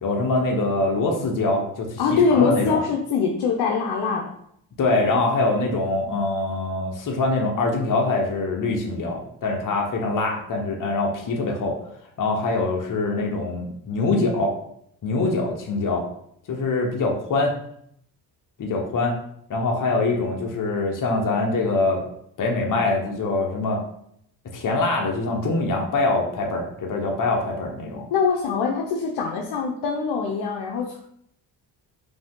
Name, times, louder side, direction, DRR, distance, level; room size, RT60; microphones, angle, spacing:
voice 1, 0.0-2.8 4.8-11.8 12.2-14.5 15.0-16.0 16.5-17.5 18.6-19.1 19.5-22.0 22.4-23.8 24.5-28.1, left 2 dB, 50° left, 0 dB, 1.1 m, -24 dB
voice 2, 2.0-4.3 28.1-31.0, left 5 dB, 70° left, 0 dB, 0.8 m, -23 dB
5.0 x 2.8 x 3.8 m, 0.70 s
cardioid pair, 75°, 41 cm